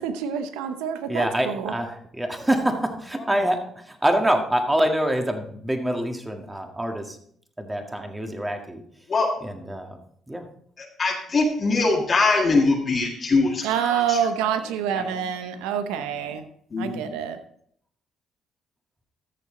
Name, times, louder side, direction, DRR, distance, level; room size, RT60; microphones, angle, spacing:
voice 1, 0.0-1.7 13.6-16.5 16.8-17.4, right 8 dB, 90° right, 9 dB, 0.8 m, -27 dB
voice 2, 1.1-7.2 7.6-8.8 9.4-10.0 10.3-10.5, right 1 dB, 10° right, 4 dB, 1.8 m, -25 dB
voice 3, 10.8-14.2 16.7-17.1, left 3 dB, 40° left, -2 dB, 1.9 m, -22 dB
14.0 x 6.8 x 3.8 m, 0.64 s
supercardioid pair, 70°, 0 cm